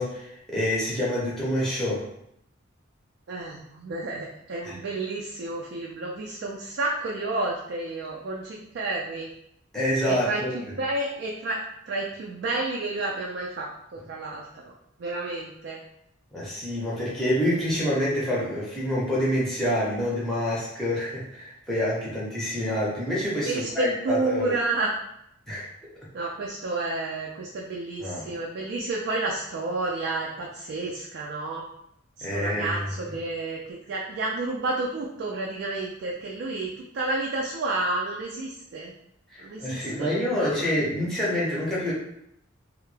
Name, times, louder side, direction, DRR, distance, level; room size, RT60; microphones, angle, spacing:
voice 1, 0.0-2.1 4.6-4.7 9.7-10.6 16.3-24.6 25.5-25.7 28.0-28.3 32.2-33.2 39.3-41.9, equal, ahead, -7 dB, 0.6 m, -27 dB
voice 2, 3.3-9.3 10.1-11.6 11.9-14.6 15.0-15.8 23.5-24.9 26.1-31.6 32.2-38.9 39.4-40.6, right 2 dB, 60° right, -2 dB, 0.3 m, -30 dB
2.2 x 2.0 x 3.1 m, 0.77 s
head